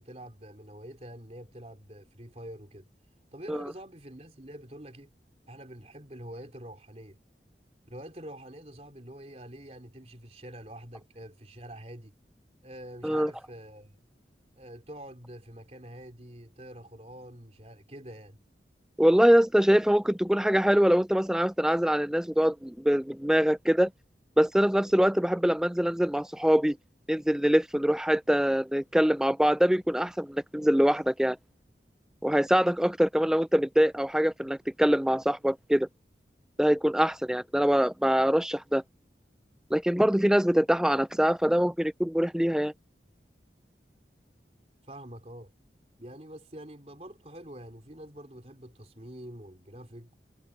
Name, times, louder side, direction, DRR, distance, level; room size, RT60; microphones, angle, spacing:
voice 1, 0.0-2.9 3.3-5.1 5.5-7.2 7.9-12.1 12.6-14.0 14.6-18.4 44.8-45.5 46.0-50.2, right 1 dB, 35° right, 3.7 m, -46 dB
voice 2, 19.0-23.9 24.4-26.8 27.1-31.4 32.2-35.9 36.6-38.8 39.7-42.7, equal, 5° right, 0.3 m, -24 dB
head